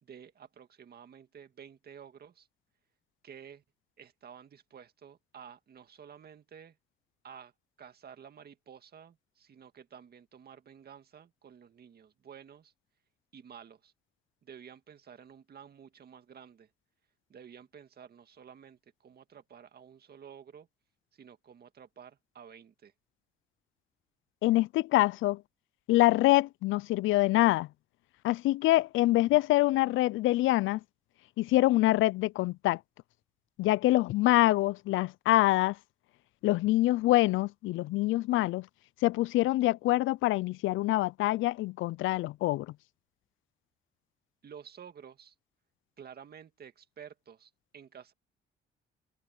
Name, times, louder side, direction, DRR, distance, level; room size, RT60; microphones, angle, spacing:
voice 1, 0.0-2.5 3.2-3.6 4.0-6.8 7.2-7.5 7.8-12.7 13.3-13.9 14.4-16.7 17.3-20.7 21.1-22.9 44.4-45.3 46.0-48.1, right 8 dB, 50° right, 2.0 m, -51 dB
voice 2, 24.4-25.4 25.9-27.7 28.2-30.8 31.4-32.8 33.6-35.8 36.4-38.7 39.0-42.7, left 17 dB, 80° left, 0.4 m, -25 dB
cardioid pair, 90°, 20 cm